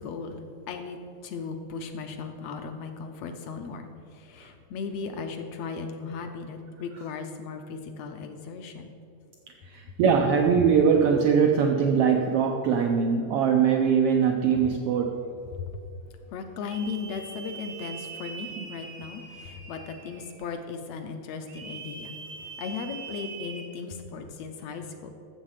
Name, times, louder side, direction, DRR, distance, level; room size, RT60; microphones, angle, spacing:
voice 1, 0.0-9.0 14.6-14.8 15.3-15.7 16.3-25.1, left 5 dB, 75° left, 6 dB, 1.6 m, -37 dB
voice 2, 9.6-15.2 18.6-18.7, right 6 dB, 90° right, 3 dB, 1.3 m, -22 dB
sound 1, 16.7-20.5 21.5-23.7, right 5 dB, 65° right, 0.9 m, -42 dB
13.0 x 7.3 x 4.9 m, 2.5 s
omnidirectional pair, 3.4 m